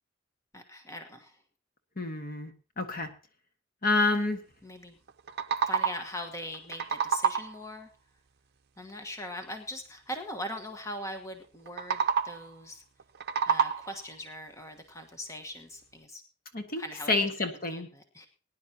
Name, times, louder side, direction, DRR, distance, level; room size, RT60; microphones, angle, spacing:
voice 1, 0.5-1.4 4.6-5.0 5.7-7.9 8.8-12.8 13.5-16.2 16.8-17.3 17.7-18.3, left 1 dB, 15° left, 5 dB, 1.3 m, -41 dB
voice 2, 2.0-3.1 3.8-4.4 16.5-17.9, left 2 dB, 50° left, 6 dB, 1.6 m, -29 dB
sound 1, 5.1-6.2 6.5-7.7 11.7-12.5 13.0-14.1, right 7 dB, 55° right, 0.7 m, -29 dB
20.5 x 10.5 x 2.9 m, 0.34 s
head